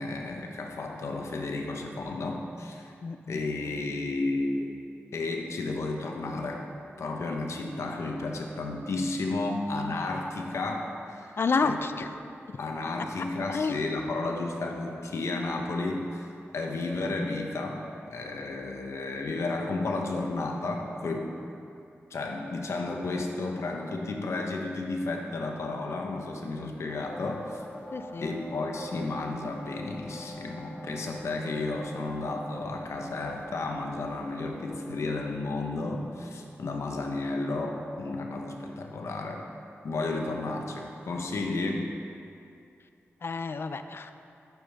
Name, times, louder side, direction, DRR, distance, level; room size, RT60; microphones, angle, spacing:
voice 1, 0.0-2.9 3.3-4.7 5.1-6.6 7.0-11.8 12.6-21.3 22.1-27.6 28.2-39.4 39.8-41.9, left 2 dB, 80° left, 2 dB, 1.0 m, -32 dB
voice 2, 3.0-3.4 11.4-12.1 13.5-13.8 27.9-28.3 36.6-36.7 43.2-44.1, left 4 dB, 55° left, 9 dB, 0.5 m, -29 dB
sound 1, 26.9-35.4, equal, 25° left, 1.3 m, -44 dB
11.0 x 8.9 x 3.5 m, 2.6 s
wide cardioid pair, 80°, 5 cm